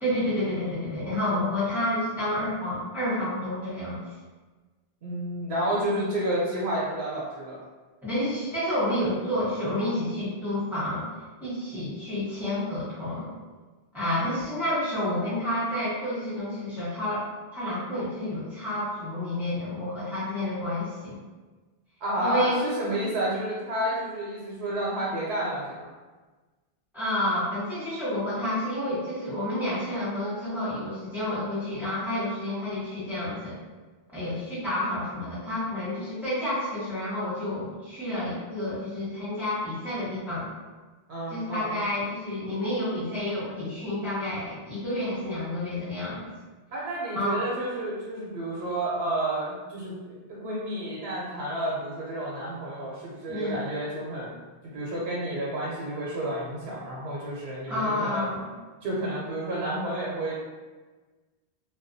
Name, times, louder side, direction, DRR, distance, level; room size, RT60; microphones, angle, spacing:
voice 1, 0.0-4.0 8.0-11.1 11.4-13.3 13.9-17.2 17.5-21.2 22.2-22.6 26.9-33.5 34.1-40.5 41.3-46.2 47.1-47.4 53.3-53.6 57.7-58.4, left 1 dB, ahead, -12 dB, 0.9 m, -29 dB
voice 2, 5.0-7.6 22.0-25.9 41.1-41.8 46.7-54.3 54.6-58.2 58.8-60.3, right 1 dB, 80° right, -6 dB, 0.8 m, -30 dB
2.3 x 2.2 x 2.5 m, 1.3 s
omnidirectional pair, 1.0 m